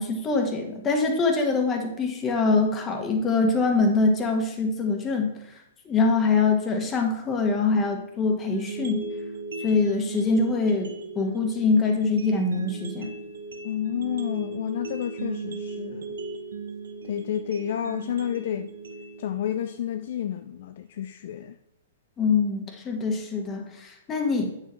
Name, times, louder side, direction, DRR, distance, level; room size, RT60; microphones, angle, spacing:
voice 1, 0.0-5.4 5.8-9.1 9.6-13.1 22.2-24.5, left 4 dB, 20° left, 1.4 m, -24 dB
sound 1, 8.5-20.5, right 3 dB, 70° right, 0.9 m, -37 dB
voice 2, 13.6-16.1 17.0-18.7 19.2-21.6, left 10 dB, 55° left, 0.4 m, -30 dB
8.9 x 7.1 x 3.1 m
figure-of-eight pair, 110°, 0 cm